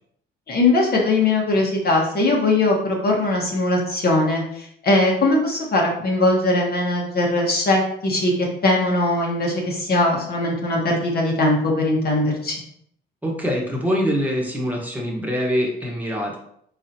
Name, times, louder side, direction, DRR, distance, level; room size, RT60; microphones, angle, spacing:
voice 1, 0.5-12.6, left 2 dB, 50° left, -1 dB, 1.4 m, -20 dB
voice 2, 13.2-16.4, equal, 10° right, -2 dB, 1.2 m, -24 dB
4.3 x 4.0 x 2.8 m, 0.69 s
cardioid pair, 90°, 20 cm